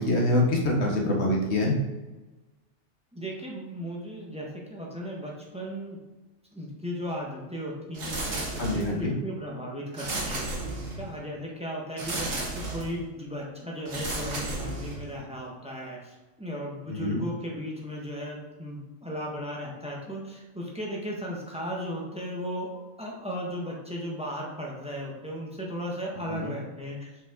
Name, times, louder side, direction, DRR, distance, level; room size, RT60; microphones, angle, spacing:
voice 1, 0.0-1.8 8.6-9.1 16.9-17.2 26.3-26.5, left 1 dB, 60° left, -1 dB, 1.5 m, -25 dB
voice 2, 3.1-6.0 6.5-10.5 11.0-22.7 23.0-27.1, equal, 5° right, -3 dB, 1.3 m, -36 dB
sound 1, 7.9-9.1 9.9-11.2 12.0-13.0 13.9-15.2, right 2 dB, 85° right, 1.8 m, -33 dB
6.2 x 5.4 x 3.8 m, 1.1 s
omnidirectional pair, 1.3 m